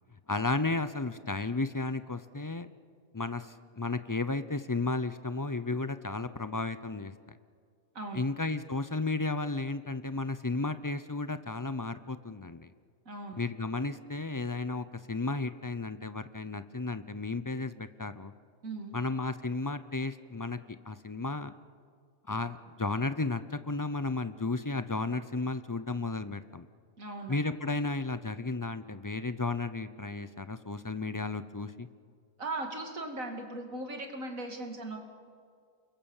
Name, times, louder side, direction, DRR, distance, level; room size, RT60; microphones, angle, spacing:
voice 1, 0.3-2.7 3.1-7.1 8.1-12.7 13.4-18.3 18.9-20.6 20.9-21.5 22.3-26.7 27.3-31.9, left 3 dB, 25° left, 12 dB, 0.4 m, -33 dB
voice 2, 13.0-13.4 18.6-19.0 27.0-27.4 32.4-35.0, right 2 dB, 85° right, 3 dB, 3.0 m, -38 dB
29.0 x 21.5 x 7.3 m, 2.1 s
omnidirectional pair, 1.4 m